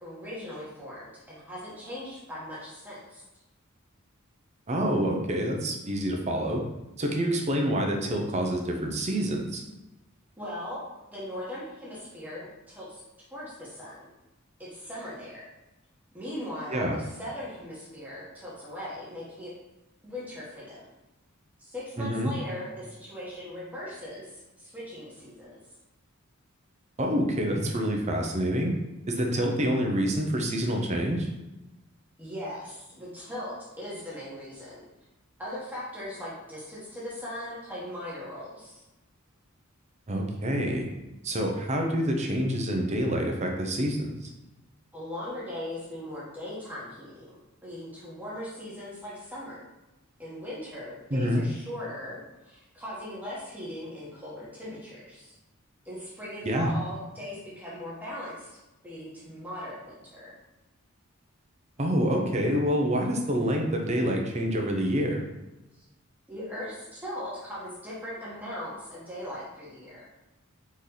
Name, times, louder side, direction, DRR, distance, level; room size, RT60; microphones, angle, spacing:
voice 1, 0.0-3.2 10.4-10.8 11.1-13.0 13.3-14.1 14.6-15.4 16.1-19.5 20.0-20.8 21.6-25.5 32.2-34.8 35.4-38.8 44.9-47.3 47.6-49.6 50.2-55.3 55.8-58.5 58.8-60.3 66.3-70.1, left 1 dB, 10° right, -8 dB, 1.2 m, -39 dB
voice 2, 4.7-6.6 7.0-9.6 16.7-17.0 22.0-22.3 27.0-28.7 29.1-31.3 40.1-40.9 41.2-44.3 51.1-51.4 56.4-56.7 61.8-65.2, equal, 30° right, 1 dB, 0.6 m, -27 dB
4.2 x 3.3 x 3.8 m, 0.98 s
head